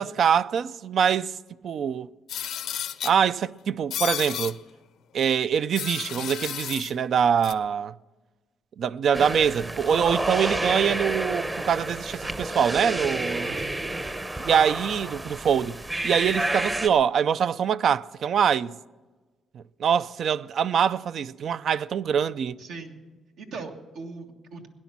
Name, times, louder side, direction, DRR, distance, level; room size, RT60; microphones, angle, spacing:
voice 1, 0.0-1.3 1.6-2.1 3.0-4.6 5.1-7.9 8.8-13.6 14.4-15.8 16.0-18.7 19.5-22.5, right 7 dB, 60° right, 0.4 m, -24 dB
sound 1, 2.3-3.2 3.9-4.5 5.7-6.9 7.4-7.5, left 10 dB, 75° left, 0.6 m, -32 dB
sound 2, 9.1-16.9, right 1 dB, 20° right, 0.8 m, -30 dB
voice 2, 13.4-13.7 22.6-23.0 23.4-24.7, right 4 dB, 80° right, 1.7 m, -39 dB
18.0 x 10.5 x 5.9 m
cardioid pair, 90°, 0 cm